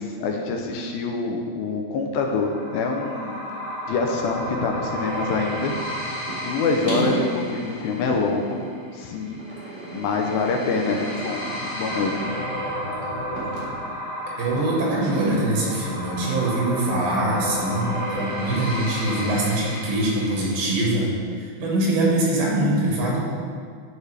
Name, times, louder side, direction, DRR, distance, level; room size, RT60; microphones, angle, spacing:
voice 1, 0.0-3.5 3.9-5.7 6.3-8.6 8.9-9.4 9.7-11.4 11.7-12.2, left 4 dB, 80° left, 2 dB, 2.3 m, -25 dB
sound 1, 2.3-21.0, equal, 60° left, 3.0 m, -33 dB
sound 2, 6.3-6.4 6.8-8.7 9.4-10.2 10.8-11.5 11.9-12.3 12.9-13.0 13.3-13.7 14.4-15.3 16.2-16.3 17.3-17.4, right 2 dB, 55° right, 0.7 m, -32 dB
voice 2, 14.3-21.1 21.4-23.2, right 1 dB, 75° right, -4 dB, 3.3 m, -23 dB
11.0 x 4.6 x 3.3 m, 2.1 s
omnidirectional pair, 4.3 m